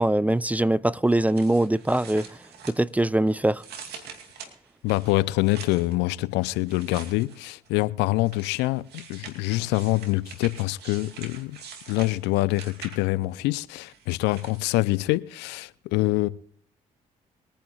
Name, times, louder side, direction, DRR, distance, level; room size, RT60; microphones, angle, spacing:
voice 1, 0.0-2.3 2.7-3.6, right 1 dB, 10° right, 0.5 m, -22 dB
sound 1, 1.1-3.2 3.6-5.9 6.7-7.7 8.3-13.3 13.9-14.7, right 6 dB, 70° right, 2.6 m, -44 dB
voice 2, 4.8-11.6 11.9-16.3, left 19 dB, 80° left, 0.6 m, -25 dB
23.0 x 10.0 x 2.4 m
hypercardioid pair, 50°, 17 cm